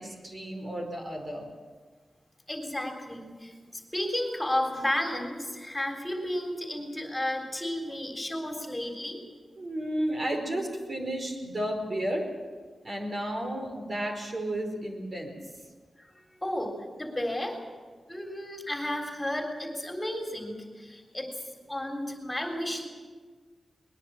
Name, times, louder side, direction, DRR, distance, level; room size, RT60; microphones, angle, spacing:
voice 1, 0.0-1.5 9.6-12.3 12.8-15.3, right 1 dB, 45° right, 3 dB, 4.7 m, -32 dB
voice 2, 2.5-9.2 16.0-17.6 18.1-22.9, left 1 dB, 15° left, 3 dB, 3.7 m, -33 dB
21.0 x 21.0 x 7.6 m, 1.5 s
wide cardioid pair, 90°, 0 cm